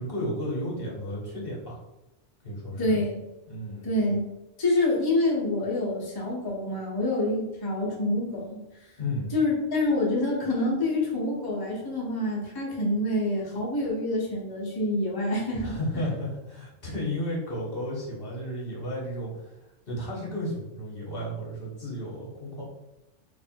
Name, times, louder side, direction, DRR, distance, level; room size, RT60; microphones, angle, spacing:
voice 1, 0.0-1.8 2.4-3.0 3.5-3.9 9.0-9.3 15.6-19.6 19.9-22.6, equal, 50° left, -4 dB, 1.2 m, -33 dB
voice 2, 2.8-3.2 3.8-4.2 4.6-8.6 9.3-15.7, left 1 dB, 20° left, -5 dB, 0.9 m, -27 dB
3.3 x 2.6 x 4.4 m, 0.98 s
omnidirectional pair, 1.3 m